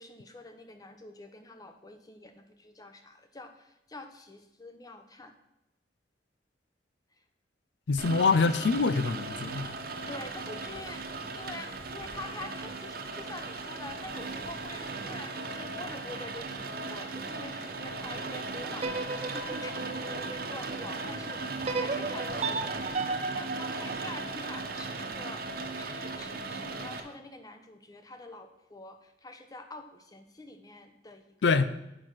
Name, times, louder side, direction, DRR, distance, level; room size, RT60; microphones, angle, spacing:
voice 1, 0.0-5.3 10.1-11.0 11.3-22.8 23.3-31.7, left 2 dB, 20° left, 7 dB, 0.9 m, -46 dB
voice 2, 7.9-9.7 31.4-31.7, left 4 dB, 85° left, 13 dB, 0.5 m, -25 dB
Rain, 8.0-27.0, right 3 dB, 55° right, 1.0 m, -37 dB
sound 1, 18.8-20.9 21.7-24.8, right 3 dB, 35° right, 0.6 m, -35 dB
8.8 x 5.9 x 6.3 m, 0.86 s
head